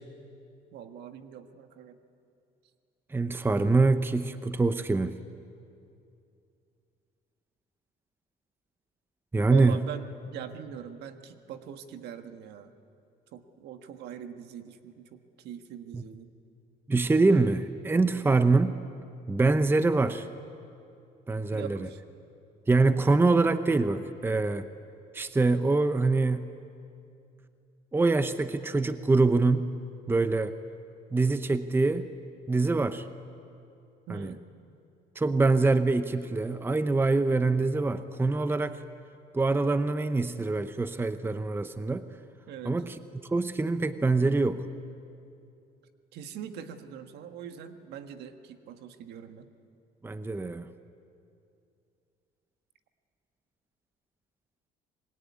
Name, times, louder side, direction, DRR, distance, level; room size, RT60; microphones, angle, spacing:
voice 1, 0.7-2.0 9.4-12.7 13.3-16.3 18.1-18.3 21.5-22.0 34.1-34.4 42.5-42.8 46.1-49.5, right 8 dB, 80° right, 7 dB, 1.6 m, -42 dB
voice 2, 3.1-5.2 9.3-9.8 15.9-16.0 16.9-18.7 19.3-20.3 21.3-21.8 22.7-24.7 25.1-26.4 27.9-29.8 30.1-30.5 31.1-32.1 32.5-33.1 34.1-34.3 35.2-38.8 39.3-42.1 42.6-42.9 43.3-44.7 50.0-50.7, right 3 dB, 15° right, 11 dB, 0.8 m, -24 dB
25.5 x 21.0 x 9.7 m, 2.6 s
cardioid pair, 110°, 17 cm